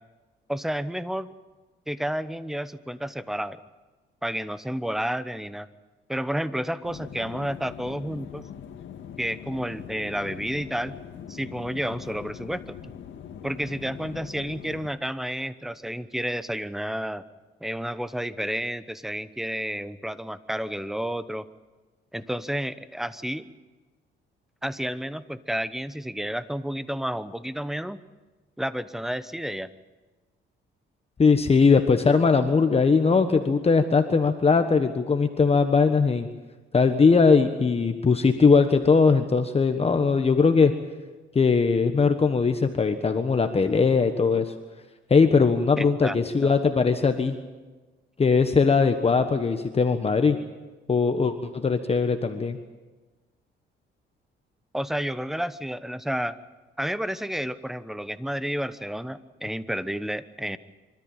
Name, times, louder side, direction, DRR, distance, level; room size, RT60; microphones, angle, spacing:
voice 1, 0.5-1.3 1.9-3.6 4.2-5.7 6.1-8.5 9.2-11.0 11.3-12.8 13.4-17.2 17.6-21.4 22.1-23.5 24.6-28.0 28.6-29.7 45.8-46.1 46.4-46.5 54.7-56.4 56.8-60.6, equal, ahead, 14 dB, 0.9 m, -31 dB
sound 1, 6.8-14.9, left 8 dB, 70° left, 2.0 m, -42 dB
voice 2, 31.2-36.3 36.7-40.7 41.3-44.5 45.1-47.4 48.2-50.4 50.9-52.6, left 4 dB, 30° left, 7 dB, 1.3 m, -20 dB
25.5 x 13.5 x 9.0 m, 1.3 s
cardioid pair, 90°, 20 cm